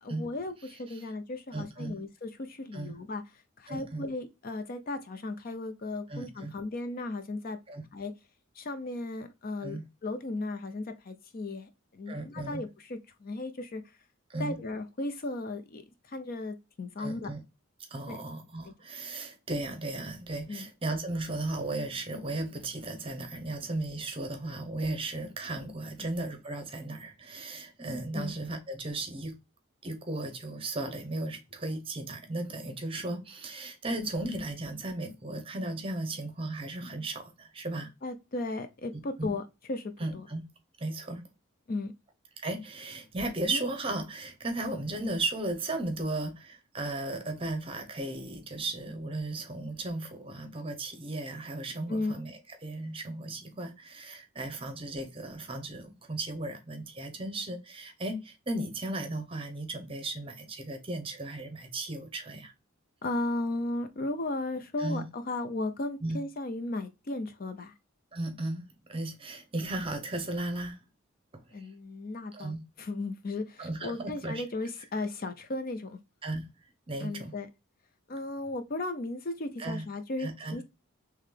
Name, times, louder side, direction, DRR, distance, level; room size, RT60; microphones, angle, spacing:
voice 1, 0.0-3.2 3.6-7.6 7.9-8.1 8.6-13.8 14.4-15.8 16.1-17.3 18.1-18.2 18.7-18.8 20.5-20.7 26.0-26.1 28.1-28.3 38.0-39.4 39.7-40.3 41.7-41.9 43.4-43.6 51.9-52.2 63.0-67.7 71.5-76.0 77.0-77.5 78.1-80.6, left 2 dB, 40° left, 0.5 m, -35 dB
voice 2, 0.6-1.0 1.5-2.0 2.7-2.9 3.7-4.0 6.1-6.5 7.7-7.8 9.6-9.8 12.1-12.6 14.3-14.6 17.0-17.4 17.9-29.4 29.8-37.9 39.2-39.3 40.0-40.5 40.8-41.2 42.4-62.5 64.8-65.0 66.0-66.2 68.1-70.8 71.6-71.7 72.3-72.6 73.6-74.4 76.2-76.5 76.9-77.3 79.6-79.8 80.2-80.6, right 2 dB, 25° right, 0.8 m, -35 dB
3.9 x 3.2 x 3.2 m
head